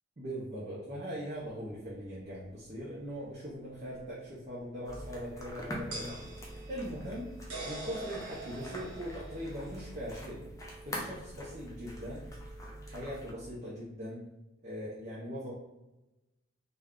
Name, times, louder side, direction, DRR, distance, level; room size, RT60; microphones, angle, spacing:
voice 1, 0.2-6.2 6.7-7.3 7.6-10.4 10.8-12.3 12.8-14.2 14.6-15.5, equal, 40° right, -7 dB, 0.6 m, -40 dB
sound 1, 1.5-1.6 4.0-4.1 5.9-10.3, right 2 dB, 85° right, 1.0 m, -45 dB
sound 2, 4.8-13.3, equal, 15° left, 0.5 m, -44 dB
2.3 x 2.2 x 3.5 m, 0.99 s
head